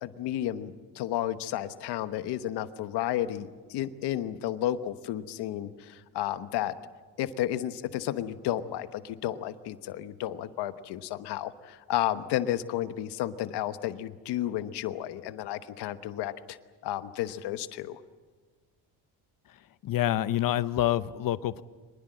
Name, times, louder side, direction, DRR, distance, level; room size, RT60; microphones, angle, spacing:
voice 1, 0.0-6.7 7.2-16.6 16.8-18.0, left 12 dB, 85° left, 12 dB, 1.2 m, -32 dB
voice 2, 19.8-21.6, left 12 dB, 55° left, 16 dB, 0.8 m, -27 dB
24.0 x 20.5 x 7.7 m, 1.5 s
cardioid pair, 115°, 39 cm